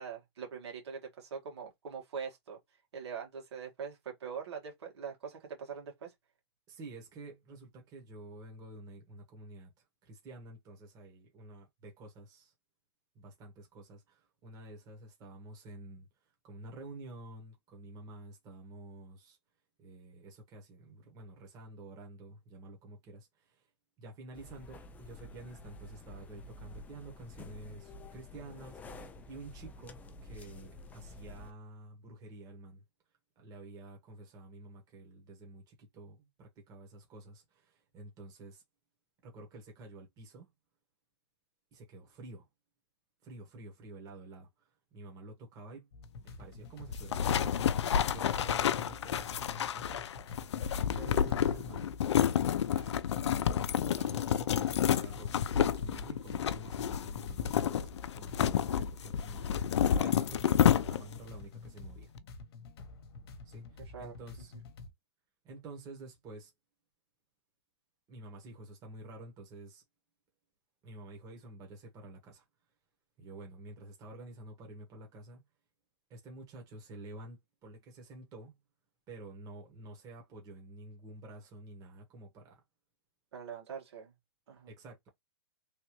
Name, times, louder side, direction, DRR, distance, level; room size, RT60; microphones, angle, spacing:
voice 1, 0.0-2.6 2.9-6.1 63.9-64.2 83.3-84.1 84.5-84.7, right 6 dB, 75° right, 1.7 m, -43 dB
voice 2, 6.7-9.7 10.0-12.5 13.1-16.1 16.4-19.4 19.8-23.6 24.0-32.8 33.4-38.6 39.2-40.5 41.7-42.5 43.2-45.9 46.2-47.5 47.9-50.1 51.0-51.9 52.7-53.0 53.7-59.6 59.9-62.1 63.4-64.5 65.4-66.5 68.1-69.8 70.8-72.4 73.2-75.4 76.1-78.6 79.1-82.6 84.7-85.0, right 2 dB, 25° right, 1.4 m, -50 dB
sound 1, 24.3-31.5, left 2 dB, 10° left, 0.4 m, -50 dB
sound 2, 45.9-64.9, left 3 dB, 60° left, 1.0 m, -49 dB
sound 3, 46.9-61.3, left 9 dB, 85° left, 0.4 m, -30 dB
3.3 x 2.6 x 3.1 m
hypercardioid pair, 145°, 14 cm